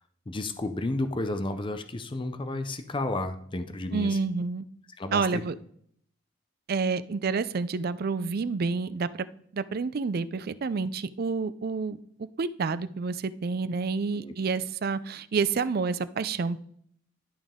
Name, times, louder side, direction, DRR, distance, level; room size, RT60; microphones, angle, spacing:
voice 1, 0.3-4.2 5.0-5.4 14.2-14.3, left 2 dB, 25° left, 9 dB, 0.6 m, -32 dB
voice 2, 3.9-4.6 5.1-5.5 6.7-9.3 9.5-12.0 12.4-16.6, right 4 dB, 50° right, 15 dB, 0.4 m, -29 dB
11.5 x 5.2 x 3.6 m, 0.65 s
head